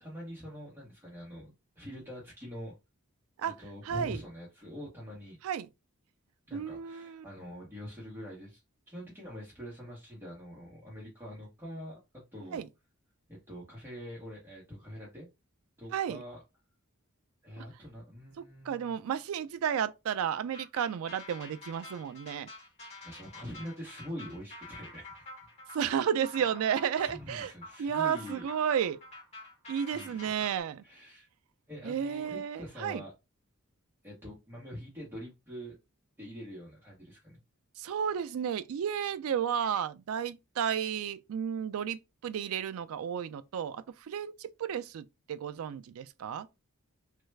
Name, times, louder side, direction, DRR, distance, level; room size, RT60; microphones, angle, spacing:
voice 1, 0.0-2.7 3.6-5.4 6.5-8.6 8.9-12.0 12.3-12.6 13.3-15.3 15.8-16.4 17.4-19.0 23.0-25.2 26.2-26.5 26.9-28.5 29.9-30.2 30.8-31.3 31.7-33.1 34.0-35.7 36.2-37.4, equal, 10° right, 1.0 m, -44 dB
voice 2, 3.9-4.2 5.4-5.7 6.5-7.2 12.5-12.6 15.9-16.2 17.6-17.7 18.4-22.5 25.7-27.5 27.8-29.0 29.7-30.8 31.8-33.0 37.8-46.5, right 8 dB, 70° right, 0.3 m, -32 dB
sound 1, 20.5-30.6, left 2 dB, 30° left, 1.5 m, -48 dB
3.2 x 2.3 x 3.2 m
head